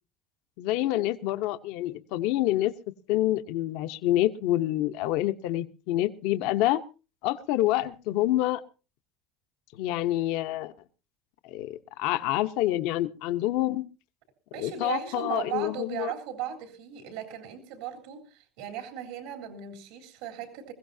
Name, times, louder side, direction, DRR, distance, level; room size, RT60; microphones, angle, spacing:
voice 1, 0.6-2.7 3.1-6.8 7.2-8.6 9.7-10.7 11.4-13.8 14.6-16.1, left 15 dB, 70° left, 10 dB, 0.9 m, -27 dB
voice 2, 14.5-20.7, right 9 dB, 85° right, 3 dB, 3.6 m, -37 dB
22.0 x 16.0 x 2.7 m, 0.33 s
cardioid pair, 140°, 0 cm